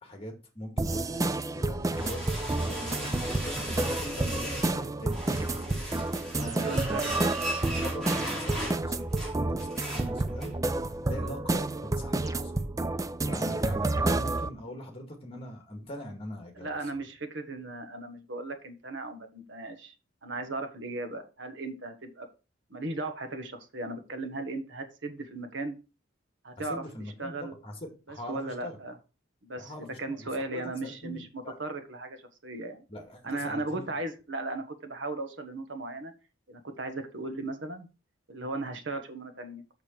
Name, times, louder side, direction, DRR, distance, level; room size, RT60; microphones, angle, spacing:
voice 1, 0.0-1.2 1.5-6.1 6.4-7.3 7.8-10.5 11.0-12.7 13.0-17.0 26.6-28.8 29.6-31.6 32.9-33.9, left 1 dB, 30° left, 2.0 m, -42 dB
sound 1, 0.8-14.5, right 2 dB, 15° right, 0.4 m, -30 dB
sound 2, 1.8-4.8 5.1-10.5, equal, ahead, 4.5 m, -38 dB
voice 2, 6.6-7.1 16.6-19.9 20.2-22.3 22.7-25.7 26.4-26.8 27.2-27.5 28.1-28.9 29.4-29.7 30.0-32.2 32.4-32.8 33.2-36.1 36.5-37.9 38.3-39.6, right 2 dB, 65° right, 1.4 m, -36 dB
6.7 x 6.6 x 4.5 m
head